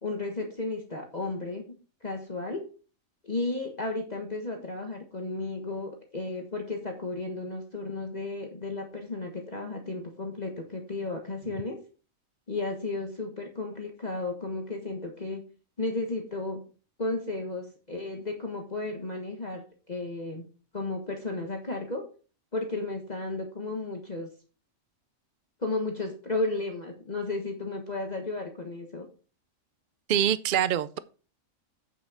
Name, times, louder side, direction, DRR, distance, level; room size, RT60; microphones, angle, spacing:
voice 1, 0.0-1.7 2.0-2.7 3.2-11.8 12.5-15.4 15.8-16.6 17.0-20.5 20.7-22.0 22.5-24.3 25.6-29.1, left 2 dB, 30° left, 2 dB, 1.4 m, -33 dB
voice 2, 30.1-31.0, right 10 dB, 70° right, 15 dB, 0.4 m, -25 dB
8.8 x 6.3 x 4.9 m, 0.36 s
omnidirectional pair, 1.4 m